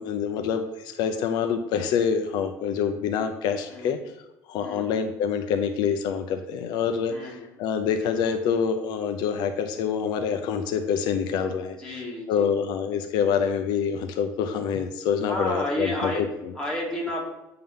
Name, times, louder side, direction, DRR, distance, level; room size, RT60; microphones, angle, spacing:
voice 1, 0.0-4.0 4.5-12.0 12.3-16.5, left 7 dB, 75° left, 6 dB, 0.7 m, -26 dB
voice 2, 7.1-7.5 11.8-12.5 15.3-16.3 16.5-17.2, left 1 dB, 5° left, -5 dB, 2.8 m, -31 dB
8.9 x 3.9 x 5.5 m, 0.94 s
cardioid pair, 145°, 8 cm